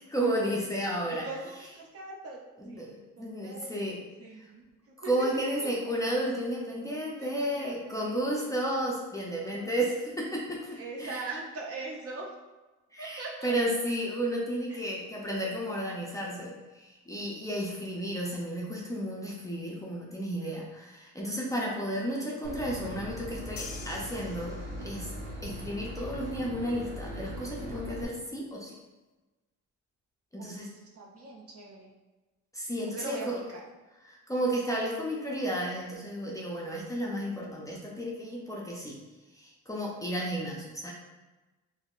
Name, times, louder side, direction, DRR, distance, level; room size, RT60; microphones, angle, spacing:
voice 1, 0.0-1.3 2.6-4.0 5.1-11.2 12.9-25.1 25.4-28.7 30.3-30.7 32.5-33.4 34.0-39.0 39.4-40.9, right 1 dB, 10° left, -4 dB, 0.5 m, -33 dB
voice 2, 1.1-2.4 2.7-3.7 4.2-5.3 7.2-8.3 9.4-9.7 10.7-12.3 13.0-13.8 14.7-14.9 30.4-31.9 32.8-33.6, right 3 dB, 50° right, -2 dB, 0.7 m, -42 dB
Boat Water vehicle / Engine, 22.4-28.1, equal, 85° right, 0.8 m, -40 dB
sound 1, 23.6-25.1, left 6 dB, 70° left, 0.5 m, -45 dB
3.5 x 2.1 x 2.4 m, 1.2 s
cardioid pair, 90°, 30 cm